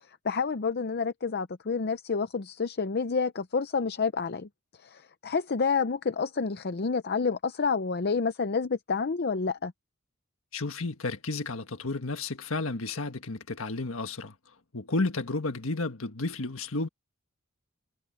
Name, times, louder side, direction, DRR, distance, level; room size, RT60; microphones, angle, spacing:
voice 1, 0.1-4.5 4.8-9.7, left 5 dB, 50° left, 0.6 m, -29 dB
voice 2, 10.5-14.3 14.7-16.9, left 3 dB, 80° left, 1.6 m, -32 dB
head